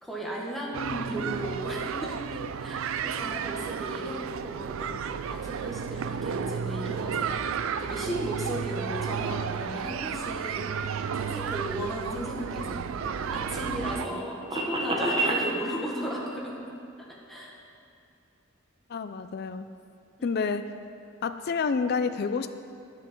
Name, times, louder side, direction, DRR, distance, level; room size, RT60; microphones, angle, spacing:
voice 1, 0.0-4.9 5.3-12.9 13.1-16.6 17.3-17.6 20.2-20.3, equal, ahead, -4 dB, 1.4 m, -35 dB
sound 1, 0.7-14.1, right 7 dB, 70° right, 0.4 m, -32 dB
sound 2, 12.4-15.4, right 2 dB, 25° right, 1.0 m, -31 dB
voice 2, 18.9-19.7 20.2-20.7 21.2-22.5, left 5 dB, 50° left, 10 dB, 0.4 m, -28 dB
9.7 x 5.8 x 7.3 m, 2.6 s
head